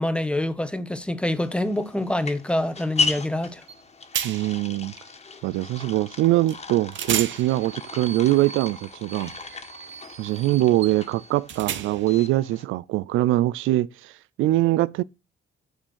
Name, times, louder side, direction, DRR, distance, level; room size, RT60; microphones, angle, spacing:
voice 1, 0.0-3.6, left 1 dB, 5° left, 1.2 m, -26 dB
sound 1, 1.4-12.6, left 4 dB, 30° left, 1.9 m, -35 dB
sound 2, 3.7-3.8 4.1-4.7 6.5-6.6 6.9-12.2, right 10 dB, 70° right, 1.2 m, -34 dB
voice 2, 4.2-4.9 5.4-9.3 10.2-14.1 14.4-15.0, right 16 dB, 90° right, 0.4 m, -23 dB
9.8 x 6.4 x 6.3 m
cardioid pair, 90°, 20 cm